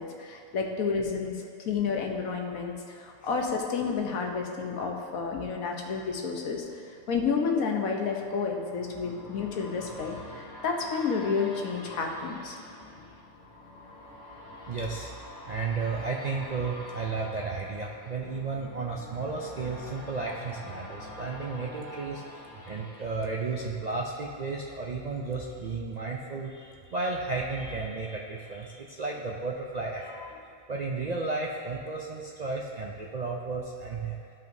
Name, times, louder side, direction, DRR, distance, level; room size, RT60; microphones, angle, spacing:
voice 1, 0.0-12.6, left 5 dB, 85° left, 1 dB, 1.3 m, -30 dB
sound 1, 6.8-24.4 24.8-24.9, left 1 dB, 60° left, 1.6 m, -46 dB
voice 2, 14.7-15.1 15.5-34.2, right 3 dB, 60° right, -2 dB, 0.4 m, -33 dB
13.5 x 5.5 x 2.7 m, 2.6 s
omnidirectional pair, 1.4 m